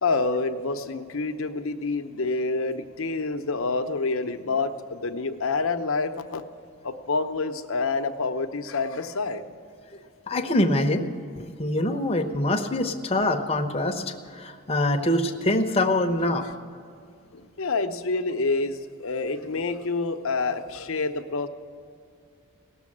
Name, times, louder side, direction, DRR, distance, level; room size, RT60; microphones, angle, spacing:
voice 1, 0.0-6.4 6.8-9.4 17.3-21.5, left 3 dB, 65° left, 7 dB, 0.8 m, -27 dB
voice 2, 10.3-11.1 11.4-16.5, left 1 dB, 25° left, 5 dB, 0.8 m, -24 dB
17.5 x 7.0 x 9.8 m, 2.4 s
head